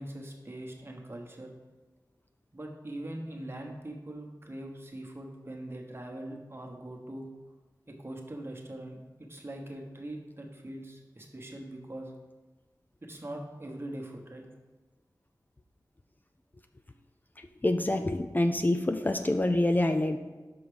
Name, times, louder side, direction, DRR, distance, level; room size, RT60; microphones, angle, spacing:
voice 1, 0.0-1.5 2.5-7.3 7.9-9.0 9.3-12.1 13.0-14.5, right 1 dB, 35° right, 1 dB, 1.3 m, -42 dB
voice 2, 17.6-20.2, left 1 dB, 25° left, 6 dB, 0.4 m, -26 dB
6.0 x 5.4 x 5.0 m, 1.2 s
wide cardioid pair, 60°, 7 cm